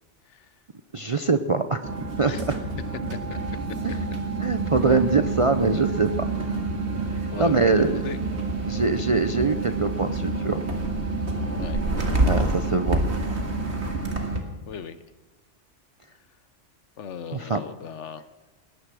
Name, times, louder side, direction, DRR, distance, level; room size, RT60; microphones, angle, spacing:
voice 1, 0.9-1.9 2.2-2.3 3.8-4.0 4.4-6.3 7.1-8.0 8.7-10.6 12.2-13.0 17.3-17.6, right 4 dB, 40° right, 8 dB, 0.5 m, -23 dB
sound 1, 1.8-14.4, right 2 dB, 65° right, 2.0 m, -27 dB
voice 2, 7.3-8.2 11.6-11.8 14.7-15.0 17.0-18.2, left 7 dB, 75° left, 13 dB, 1.2 m, -37 dB
19.0 x 10.0 x 6.2 m, 1.2 s
omnidirectional pair, 1.2 m